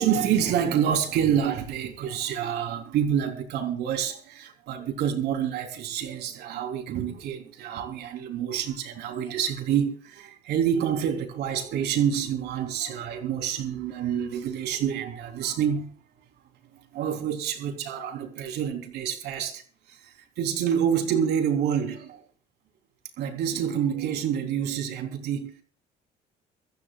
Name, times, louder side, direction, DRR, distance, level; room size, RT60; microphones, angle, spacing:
voice 1, 0.0-15.9 16.9-19.6 19.9-22.2 23.2-25.6, right 8 dB, 80° right, 3.7 m, -27 dB
25.0 x 14.5 x 2.4 m
cardioid pair, 110°, 17 cm